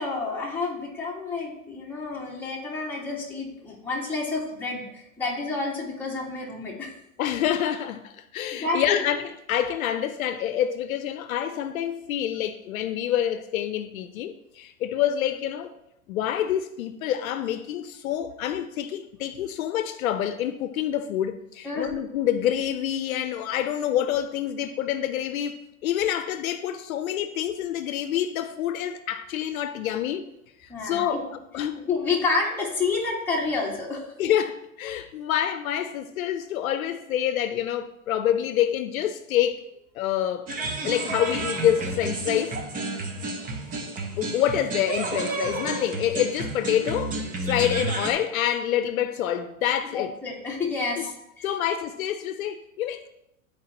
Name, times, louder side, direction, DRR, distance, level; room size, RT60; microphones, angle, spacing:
voice 1, 0.0-6.9 8.5-9.0 21.6-21.9 30.7-31.2 31.9-34.1 43.7-43.8 49.9-51.5, left 3 dB, 5° left, 1.8 m, -29 dB
voice 2, 7.2-15.7 16.1-30.2 30.6-31.8 34.2-39.7 39.9-40.5 40.8-42.6 44.2-50.1 51.0-51.1 51.4-53.1, left 10 dB, 75° left, 0.7 m, -27 dB
sound 1, 40.5-48.1, right 2 dB, 20° right, 0.8 m, -31 dB
11.5 x 4.5 x 2.9 m
hypercardioid pair, 135°, 42 cm